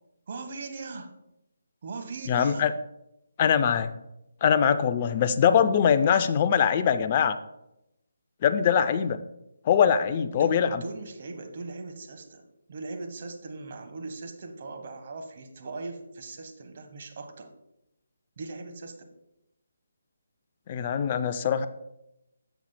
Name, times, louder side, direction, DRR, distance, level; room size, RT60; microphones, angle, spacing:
voice 1, 0.3-1.1 1.8-2.7 10.3-12.4 12.7-17.5 18.4-19.1, right 3 dB, 45° right, 5 dB, 1.1 m, -39 dB
voice 2, 2.3-2.7 3.4-3.9 4.4-7.4 8.4-9.2 9.6-10.8 20.7-21.7, left 8 dB, 35° left, 10 dB, 0.4 m, -22 dB
11.5 x 7.1 x 2.2 m, 0.87 s
figure-of-eight pair, 150°, 0 cm